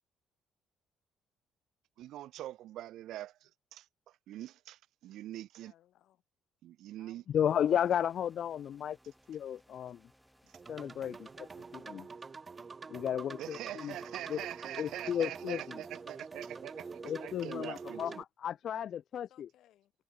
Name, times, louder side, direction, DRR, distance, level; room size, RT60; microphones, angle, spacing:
voice 1, 2.0-5.7 6.6-7.2 13.4-18.2, right 14 dB, 70° right, 0.5 m, -44 dB
voice 2, 5.5-6.2 7.0-8.2 13.2-14.6 19.1-20.0, left 13 dB, 65° left, 6.7 m, -66 dB
voice 3, 7.3-9.0 9.3-10.0 10.7-12.1 12.9-13.9 14.3-14.5 14.8-15.8 17.0-19.5, left 9 dB, 50° left, 0.6 m, -34 dB
sound 1, 7.5-11.9, equal, ahead, 6.3 m, -66 dB
sound 2, 10.5-18.2, right 4 dB, 25° right, 0.8 m, -46 dB
cardioid pair, 140°, 0 cm